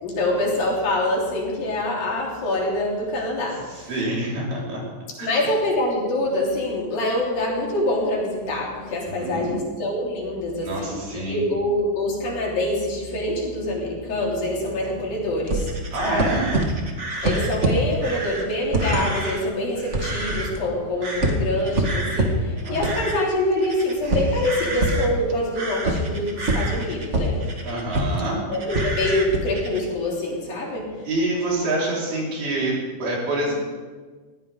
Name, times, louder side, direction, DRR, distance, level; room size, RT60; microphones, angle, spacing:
voice 1, 0.0-3.9 5.2-16.4 17.2-27.4 28.5-31.1, left 1 dB, 65° left, -3 dB, 5.1 m, -25 dB
voice 2, 3.7-4.8 5.2-5.3 9.1-9.6 10.6-11.5 15.9-16.5 16.8-16.9 22.6-22.9 27.6-28.4 31.0-33.5, right 2 dB, 80° right, -5 dB, 6.8 m, -26 dB
sound 1, 15.5-19.4 19.8-20.7 21.0-28.2 28.5-29.9, right 1 dB, 50° right, 0.8 m, -25 dB
19.5 x 15.5 x 3.8 m, 1.4 s
omnidirectional pair, 4.4 m